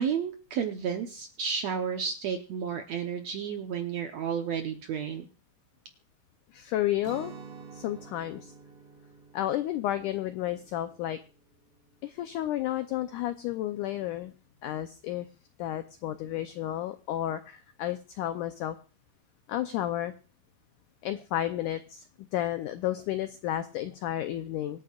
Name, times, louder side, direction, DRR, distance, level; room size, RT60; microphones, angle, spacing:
voice 1, 0.0-5.2, right 7 dB, 85° right, 5 dB, 1.5 m, -32 dB
voice 2, 6.5-7.3 7.7-8.5 9.3-11.2 12.0-14.3 14.6-15.3 15.6-18.8 19.5-20.1 21.0-22.0 22.3-24.8, left 13 dB, 90° left, 10 dB, 1.8 m, -32 dB
Guitar, 7.0-12.8, right 6 dB, 55° right, 1.6 m, -50 dB
25.0 x 8.7 x 2.4 m, 0.36 s
omnidirectional pair, 4.5 m